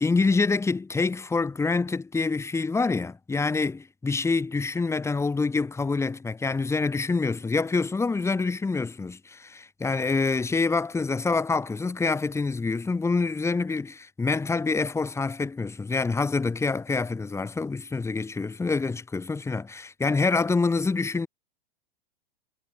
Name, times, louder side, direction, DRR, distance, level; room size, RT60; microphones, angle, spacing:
voice 1, 0.0-21.3, left 4 dB, 10° left, 1.7 m, -26 dB
hypercardioid pair, 115°, 29 cm